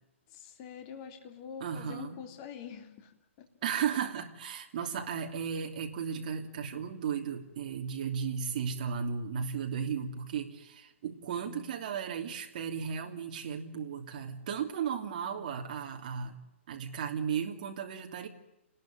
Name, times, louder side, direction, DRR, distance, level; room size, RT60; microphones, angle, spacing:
voice 1, 0.3-3.1 3.4-3.5 4.8-4.9, left 7 dB, 25° left, 5 dB, 3.3 m, -45 dB
voice 2, 1.6-2.2 3.6-16.4 16.7-18.3, right 7 dB, 35° right, 3 dB, 3.0 m, -35 dB
29.0 x 20.0 x 9.0 m, 0.97 s
hypercardioid pair, 170°, 7 cm